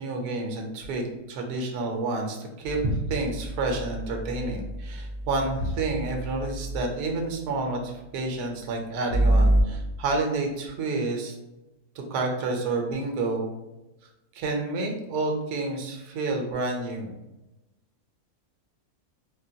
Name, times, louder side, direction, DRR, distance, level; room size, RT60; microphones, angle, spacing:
voice 1, 0.0-11.3 12.1-13.5 14.3-17.1, right 3 dB, 90° right, 2 dB, 1.2 m, -29 dB
sound 1, 2.6-7.0 9.1-9.6, right 1 dB, 70° left, 0.9 m, -27 dB
3.6 x 2.2 x 2.6 m, 0.96 s
omnidirectional pair, 1.6 m